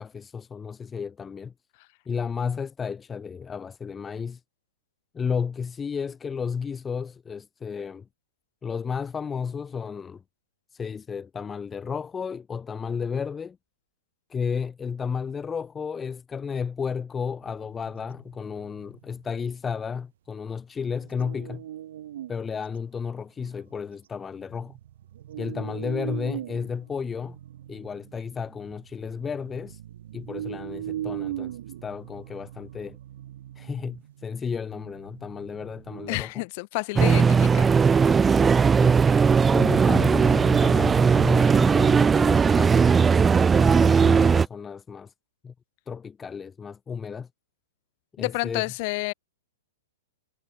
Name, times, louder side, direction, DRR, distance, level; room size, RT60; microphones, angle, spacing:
voice 1, 0.0-1.5 2.1-4.4 5.1-8.1 8.6-10.2 10.7-13.6 14.3-21.6 22.3-24.8 25.4-27.4 27.7-29.8 30.1-33.0 33.5-36.4 38.3-39.0 39.5-43.0 43.5-45.1 45.4-45.5 45.9-47.3 48.2-48.6, left 6 dB, 10° left, 1.2 m, -33 dB
sound 1, 17.4-19.3 21.0-22.4 22.8-22.9 23.4-23.9 24.4-36.2, right 12 dB, 60° right, 2.1 m, -40 dB
voice 2, 36.1-37.8 48.2-49.1, left 27 dB, 40° left, 1.5 m, -30 dB
sound 2, 37.0-44.5, right 5 dB, 10° right, 0.5 m, -18 dB
hypercardioid pair, 155°, 0 cm